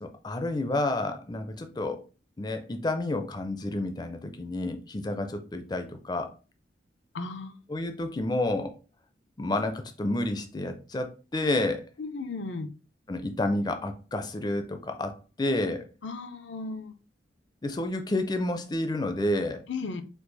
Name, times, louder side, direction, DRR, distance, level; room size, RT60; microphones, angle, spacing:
voice 1, 0.0-2.0 2.4-6.3 7.7-8.8 9.4-11.8 13.1-15.9 17.6-19.6, left 1 dB, 20° left, 0.4 m, -30 dB
voice 2, 7.1-7.5 12.0-12.7 16.0-16.9 19.7-20.0, left 3 dB, 75° left, 0.5 m, -35 dB
4.6 x 2.4 x 3.9 m
head